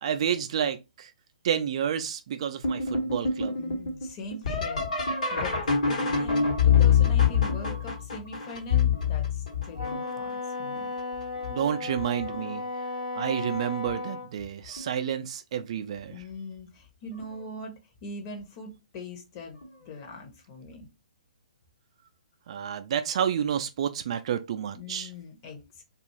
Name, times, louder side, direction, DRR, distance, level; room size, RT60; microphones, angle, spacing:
voice 1, 0.0-1.1 1.4-3.6 11.5-12.6 13.2-16.2 22.5-25.1, right 9 dB, 45° right, 0.3 m, -30 dB
sound 1, 2.6-10.3 11.0-11.5 12.0-12.6 13.9-14.0 14.7-15.0 17.2-17.3 19.6-19.7, left 6 dB, 60° left, 1.1 m, -26 dB
voice 2, 3.6-5.6 5.9-10.9 16.1-17.7 18.0-20.9 24.7-25.8, left 2 dB, 35° left, 0.8 m, -42 dB
Wind instrument woodwind instrument, 9.7-14.3, left 3 dB, 80° left, 0.8 m, -35 dB
2.4 x 2.4 x 2.9 m
figure-of-eight pair, 130°, 4 cm